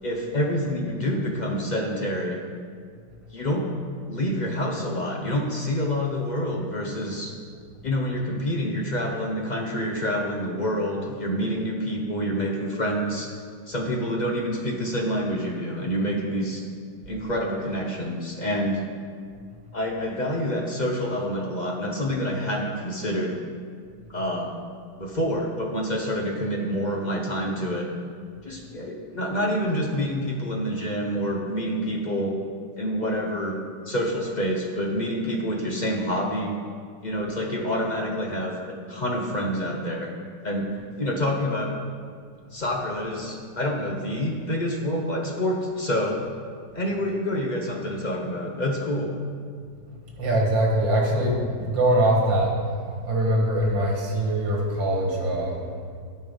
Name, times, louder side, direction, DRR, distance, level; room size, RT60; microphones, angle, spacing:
voice 1, 0.0-2.4 3.3-3.7 4.1-7.3 7.8-13.3 13.7-16.6 17.1-18.8 19.7-23.3 24.1-24.5 25.0-27.9 28.4-32.4 32.8-33.6 33.8-36.6 37.0-40.1 40.4-40.7 41.0-41.7 42.5-46.2 46.7-49.1, equal, 50° left, 0 dB, 0.5 m, -27 dB
voice 2, 50.2-55.6, right 1 dB, 90° right, -1 dB, 2.5 m, -23 dB
11.0 x 5.6 x 5.3 m, 2.1 s
omnidirectional pair, 2.0 m